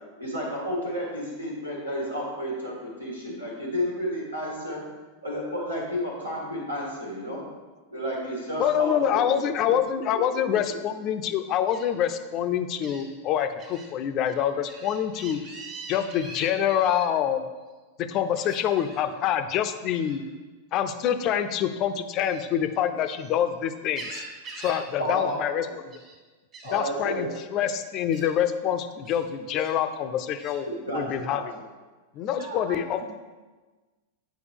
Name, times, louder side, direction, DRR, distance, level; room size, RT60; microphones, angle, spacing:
voice 1, 0.2-2.7 3.0-4.8 5.2-7.4 7.9-9.5 25.0-25.4 26.6-27.2 30.8-31.4, equal, 90° right, -4 dB, 1.7 m, -31 dB
voice 2, 8.6-15.4 15.9-17.4 18.0-20.2 20.7-24.2 24.6-25.9 26.7-30.7 30.9-31.4 32.1-33.0, left 9 dB, 35° left, 9 dB, 0.4 m, -26 dB
Gull seagull, 11.7-11.9 12.8-13.0 13.6-13.9 14.2-17.1 18.3-19.0 19.9-20.2 22.1-23.3 23.7-24.8 25.1-25.4 25.7-26.2 26.5-26.8 27.5-27.7 28.1-28.3 29.0-29.7 30.4-30.6, right 3 dB, 30° right, 1.5 m, -43 dB
voice 3, 32.3-33.1, right 3 dB, 75° right, 0 dB, 1.2 m, -40 dB
8.2 x 4.6 x 3.5 m, 1.3 s
figure-of-eight pair, 90°, 0 cm